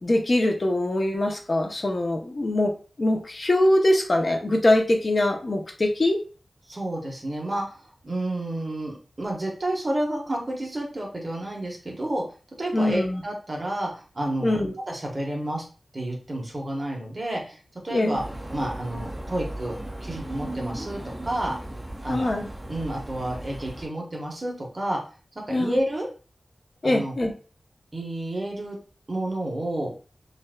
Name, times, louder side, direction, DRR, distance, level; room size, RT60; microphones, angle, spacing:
voice 1, 0.0-2.7 3.0-6.2 12.7-13.2 14.4-14.7 17.9-18.2 22.1-22.5 25.5-25.8 26.8-27.3, left 1 dB, 45° left, 3 dB, 0.7 m, -23 dB
voice 2, 6.7-7.8 8.0-12.2 12.6-14.6 14.9-15.6 15.9-17.6 17.8-18.2 18.5-19.8 20.0-21.5 22.0-22.3 22.7-25.0 25.5-26.1 26.8-27.1 27.9-28.8 29.1-29.9, right 1 dB, 35° right, -1 dB, 1.2 m, -30 dB
sound 1, 18.1-23.9, right 1 dB, 15° right, 0.8 m, -37 dB
5.6 x 2.6 x 2.2 m, 0.36 s
wide cardioid pair, 105°, 0 cm